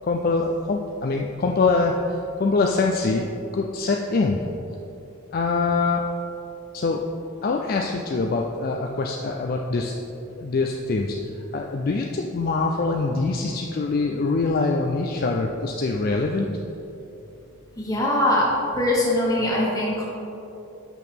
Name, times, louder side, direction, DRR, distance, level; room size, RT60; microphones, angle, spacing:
voice 1, 0.0-3.2 3.5-4.4 5.3-6.0 6.7-7.1 7.4-9.9 10.4-16.5, left 3 dB, 40° left, 1 dB, 0.3 m, -24 dB
voice 2, 17.8-18.5 18.7-20.0, left 1 dB, 15° left, -5 dB, 1.3 m, -22 dB
8.4 x 6.0 x 3.5 m, 2.9 s
head